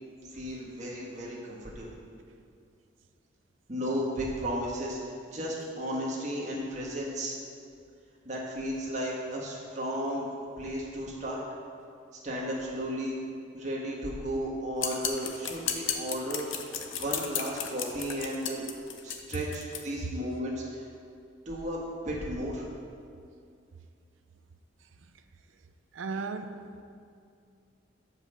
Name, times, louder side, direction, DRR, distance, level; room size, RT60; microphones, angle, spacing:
voice 1, 0.3-2.0 3.7-7.3 8.2-10.3 10.6-11.4 12.1-13.2 13.5-16.5 17.0-18.6 19.0-20.9 21.4-22.6, equal, 40° right, -4 dB, 1.5 m, -34 dB
sound 1, 14.8-19.8, left 8 dB, 80° left, 0.7 m, -34 dB
voice 2, 25.9-26.8, right 4 dB, 85° right, 9 dB, 0.5 m, -36 dB
7.5 x 5.2 x 6.3 m, 2.4 s
head